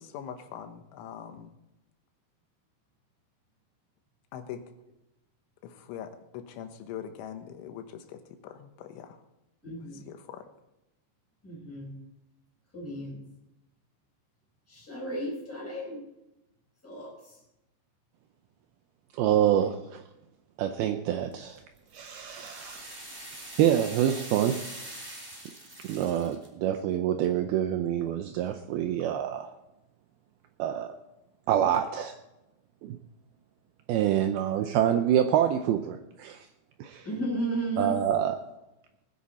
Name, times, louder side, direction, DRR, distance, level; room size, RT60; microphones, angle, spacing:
voice 1, 0.0-1.5 4.3-4.6 5.6-9.2 10.1-10.4, left 9 dB, 90° left, 7 dB, 3.6 m, -42 dB
voice 2, 9.6-10.0 11.4-12.0 12.7-13.2 14.7-16.0 16.8-17.4 37.0-38.0, right 1 dB, 5° left, -3 dB, 4.3 m, -34 dB
voice 3, 19.1-20.0 20.6-21.6 21.9-23.0 23.6-24.6 25.8-29.5 30.6-30.9 31.5-32.1 32.8-33.0 33.9-36.5 36.8-37.1 37.8-38.4, right 10 dB, 85° right, 6 dB, 2.2 m, -26 dB
sound 1, 21.3-26.5, right 1 dB, 15° right, 2.6 m, -43 dB
20.5 x 10.5 x 4.2 m, 0.93 s
omnidirectional pair, 5.3 m